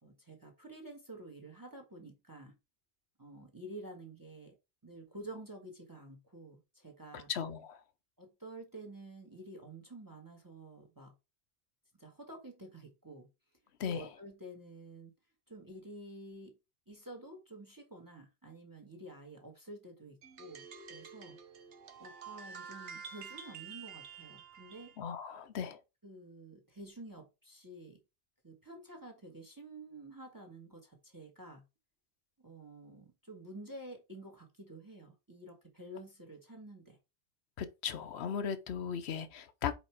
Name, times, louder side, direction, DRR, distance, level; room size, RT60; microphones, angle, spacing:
voice 1, 0.0-2.5 3.2-4.6 4.8-7.3 8.2-11.1 11.9-13.3 13.8-15.1 15.5-16.6 16.9-21.4 22.0-24.9 26.0-28.0 28.4-31.6 32.4-37.0, right 1 dB, 20° right, 1.4 m, -50 dB
voice 2, 7.3-7.8 13.8-14.0 25.0-25.8 37.6-39.7, left 7 dB, 70° left, 1.0 m, -37 dB
sound 1, 20.2-25.0, right 6 dB, 90° right, 1.3 m, -49 dB
5.2 x 4.7 x 4.6 m
omnidirectional pair, 1.1 m